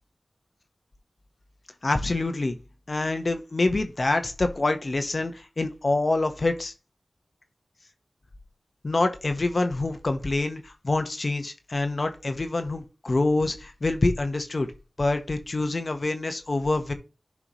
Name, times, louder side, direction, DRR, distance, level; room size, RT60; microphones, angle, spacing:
voice 1, 1.8-2.6 2.9-6.7 8.8-14.7 15.0-16.9, left 2 dB, 55° left, 7 dB, 1.3 m, -26 dB
11.5 x 4.9 x 3.1 m, 0.31 s
wide cardioid pair, 55°, 0 cm